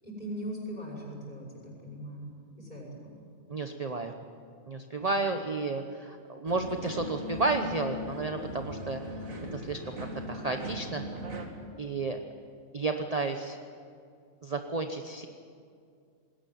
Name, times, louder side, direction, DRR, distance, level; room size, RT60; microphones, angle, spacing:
voice 1, 0.0-2.2 2.6-3.1, equal, 30° left, -2 dB, 6.3 m, -40 dB
voice 2, 3.5-4.1 4.7-9.1 9.5-10.0 10.3-11.1 11.8-12.2 12.7-13.6 14.4-15.3, right 3 dB, 30° right, 5 dB, 1.0 m, -32 dB
sound 1, 6.4-11.5, equal, 75° right, 2.6 m, -39 dB
20.5 x 18.0 x 9.4 m, 2.3 s
omnidirectional pair, 1.4 m